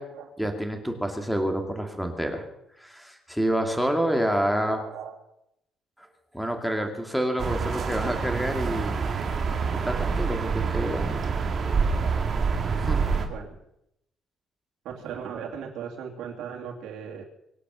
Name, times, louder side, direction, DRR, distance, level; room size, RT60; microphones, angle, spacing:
voice 1, 0.4-2.4 2.8-4.8 6.3-9.0 9.8-11.2 12.9-13.0, equal, ahead, 4 dB, 2.5 m, -28 dB
voice 2, 4.1-5.1 6.8-6.9 8.4-8.9 13.3-13.6 14.8-17.2, right 7 dB, 90° right, 0 dB, 2.8 m, -39 dB
sound 1, 7.4-13.3, right 5 dB, 40° right, 2.2 m, -26 dB
24.0 x 8.4 x 7.0 m, 0.80 s
cardioid pair, 150°, 0 cm